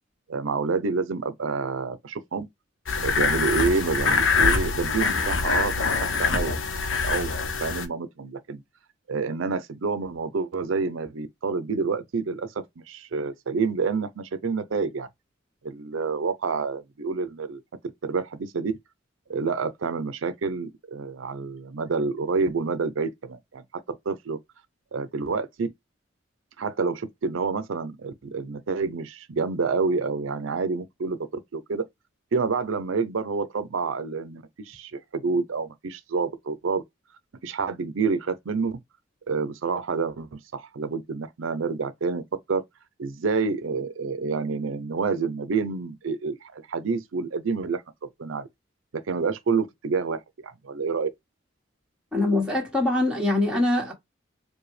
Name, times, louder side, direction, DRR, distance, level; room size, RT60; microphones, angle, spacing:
voice 1, 0.3-2.5 3.0-5.7 6.0-6.5 6.9-8.6 9.1-12.5 12.9-15.1 15.6-17.6 18.0-18.7 19.3-23.6 24.1-24.4 24.9-25.7 26.6-31.8 32.3-36.8 37.4-38.8 39.3-42.6 43.0-47.8 48.2-48.5 49.1-51.1, right 4 dB, 85° right, 0.5 m, -28 dB
sound 1, 2.9-7.9, left 5 dB, 80° left, 0.8 m, -24 dB
voice 2, 52.1-53.9, left 2 dB, 5° right, 1.5 m, -23 dB
4.8 x 2.2 x 3.2 m
head